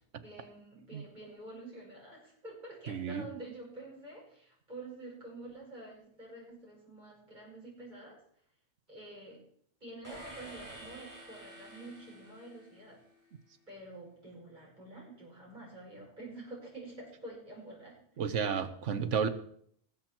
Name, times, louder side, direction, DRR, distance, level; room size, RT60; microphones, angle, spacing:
voice 1, 0.1-8.2 8.9-9.4 9.8-13.0 13.7-18.0, right 2 dB, 40° right, -3 dB, 6.1 m, -48 dB
voice 2, 2.9-3.3 18.2-19.3, right 7 dB, 85° right, 10 dB, 1.3 m, -32 dB
sound 1, 10.0-13.2, right 1 dB, 15° right, 4.4 m, -50 dB
20.0 x 7.4 x 4.5 m, 0.65 s
omnidirectional pair, 1.2 m